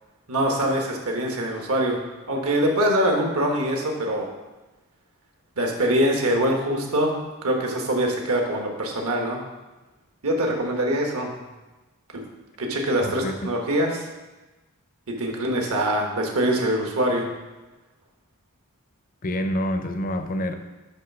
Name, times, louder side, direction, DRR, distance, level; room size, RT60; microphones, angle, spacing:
voice 1, 0.3-2.0 2.3-4.3 5.6-9.4 10.2-11.3 12.1-12.2 12.6-14.0 15.2-17.3, right 1 dB, 75° right, 1 dB, 1.4 m, -23 dB
voice 2, 13.0-13.3 19.2-20.5, left 1 dB, 40° left, 7 dB, 0.6 m, -27 dB
9.7 x 3.4 x 6.0 m, 1.1 s
head